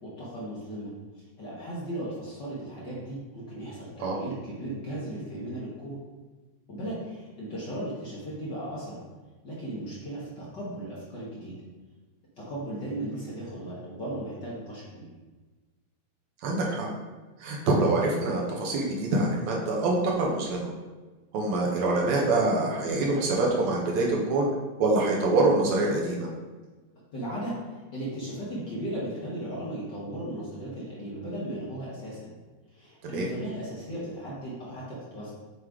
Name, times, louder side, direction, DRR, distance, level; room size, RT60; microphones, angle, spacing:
voice 1, 0.0-6.0 6.7-9.0 9.4-11.5 12.4-15.1 27.1-32.3 32.7-35.3, right 1 dB, 45° left, -7 dB, 1.7 m, -36 dB
voice 2, 16.4-16.9 17.4-20.7 21.3-24.5 24.8-26.3 33.1-33.3, right 2 dB, 75° right, -2 dB, 2.3 m, -25 dB
7.8 x 3.2 x 4.8 m, 1.3 s
omnidirectional pair, 3.3 m